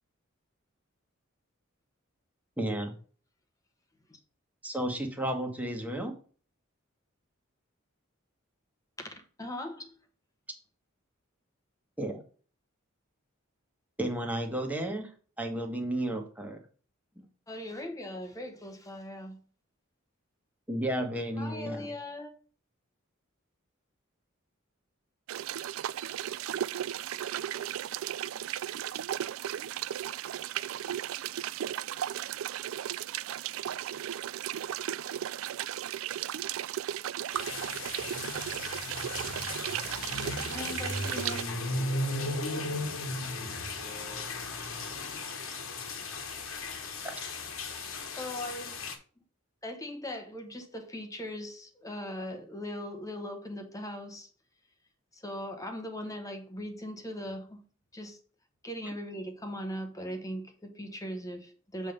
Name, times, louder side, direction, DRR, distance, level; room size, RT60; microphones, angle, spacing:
voice 1, 2.6-2.9 4.6-6.1 12.0-12.2 14.0-15.1 15.4-16.6 20.7-21.9 44.8-45.1 47.0-47.2, right 1 dB, 10° right, 1.4 m, -33 dB
voice 2, 9.0-10.0 17.5-19.4 21.4-22.3 40.2-41.5 48.2-48.8 49.6-54.3 55.1-57.6 57.9-58.2 58.6-61.9, left 1 dB, 15° left, 1.1 m, -39 dB
sound 1, 25.3-41.4, right 11 dB, 75° right, 0.3 m, -35 dB
sound 2, 37.3-48.9, left 2 dB, 75° left, 1.4 m, -36 dB
voice 3, 41.0-44.3, right 1 dB, 40° left, 1.3 m, -46 dB
7.4 x 3.5 x 5.3 m
head